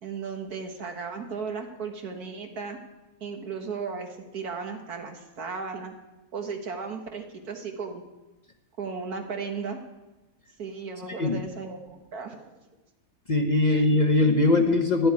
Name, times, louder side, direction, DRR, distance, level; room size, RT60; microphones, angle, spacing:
voice 1, 0.0-2.8 3.2-5.9 6.3-8.0 8.8-9.8 10.6-12.4 13.6-13.9, right 5 dB, 80° right, 4 dB, 2.0 m, -35 dB
voice 2, 13.3-15.1, left 2 dB, 35° left, 4 dB, 0.9 m, -21 dB
11.5 x 7.9 x 9.5 m, 1.1 s
omnidirectional pair, 1.6 m